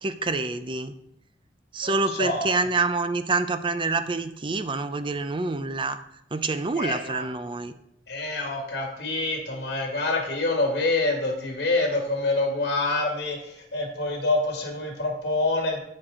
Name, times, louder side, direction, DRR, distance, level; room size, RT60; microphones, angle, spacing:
voice 1, 0.0-0.9 1.7-6.0 6.3-7.7, right 3 dB, 30° right, 11 dB, 0.5 m, -27 dB
voice 2, 1.8-2.5 6.8-7.2 8.1-15.8, left 2 dB, 65° left, 0 dB, 2.1 m, -26 dB
14.0 x 4.7 x 3.8 m, 0.77 s
head